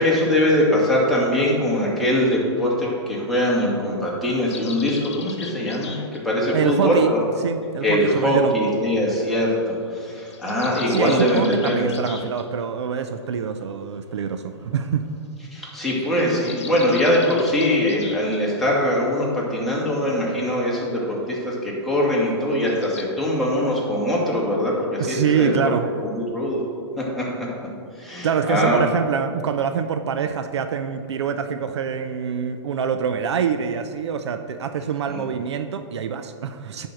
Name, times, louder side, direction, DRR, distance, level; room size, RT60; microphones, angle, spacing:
voice 1, 0.0-6.0 6.2-7.2 7.8-12.1 15.5-25.5 26.1-26.6 27.0-27.5 27.9-28.8 35.1-35.2, left 1 dB, ahead, -6 dB, 2.4 m, -22 dB
sound 1, 4.5-6.2 10.0-12.5 15.6-18.4 22.5-23.0, left 6 dB, 70° left, 1.1 m, -39 dB
voice 2, 6.5-7.1 7.4-8.5 10.9-15.1 25.0-25.9 28.2-36.9, right 7 dB, 70° right, 8 dB, 0.6 m, -25 dB
10.0 x 4.6 x 6.3 m, 2.3 s
hypercardioid pair, 120°, 15 cm